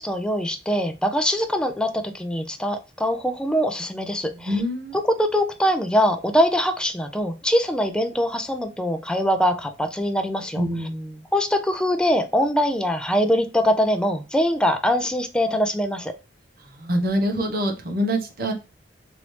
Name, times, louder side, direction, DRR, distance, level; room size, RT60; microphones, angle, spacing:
voice 1, 0.0-4.6 4.9-10.6 11.3-16.1, equal, 5° left, 0.4 m, -23 dB
voice 2, 4.4-5.0 10.6-11.2 16.7-18.5, equal, 55° right, 0.9 m, -25 dB
3.0 x 2.7 x 3.1 m
head